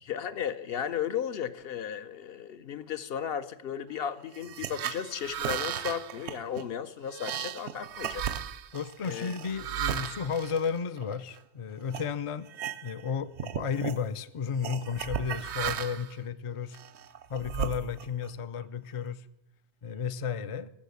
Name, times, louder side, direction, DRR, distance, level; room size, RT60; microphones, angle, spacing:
voice 1, 0.1-8.2 9.0-9.3, left 8 dB, 65° left, 12 dB, 0.9 m, -35 dB
sound 1, 4.3-11.4 11.9-12.1 12.5-13.1 13.3-14.0 14.6-16.1 16.7-18.3, right 9 dB, 90° right, 0.9 m, -35 dB
voice 2, 8.7-12.5 12.8-16.8 17.3-19.3 19.8-20.7, left 6 dB, 50° left, 13 dB, 0.4 m, -33 dB
15.0 x 6.4 x 8.1 m, 0.88 s
omnidirectional pair, 1.1 m